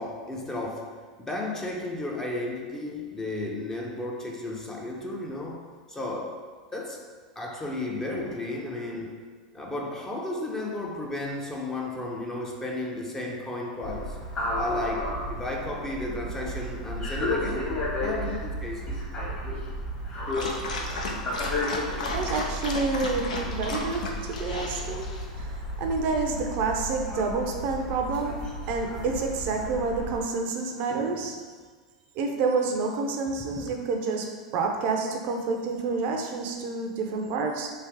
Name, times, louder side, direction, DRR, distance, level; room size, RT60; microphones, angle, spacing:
voice 1, 0.0-6.4 6.7-7.0 7.4-9.2 9.5-19.0 21.0-21.3 30.9-31.3 33.4-33.7, left 2 dB, 10° left, -1 dB, 0.6 m, -34 dB
sound 1, 13.8-30.2, left 1 dB, 30° left, 1.4 m, -33 dB
Dog, 20.3-25.3, left 2 dB, 80° left, 0.5 m, -34 dB
voice 2, 22.1-31.3 32.2-37.7, right 4 dB, 50° right, 2 dB, 0.5 m, -29 dB
3.4 x 2.8 x 3.4 m, 1.5 s
hypercardioid pair, 100°, 4 cm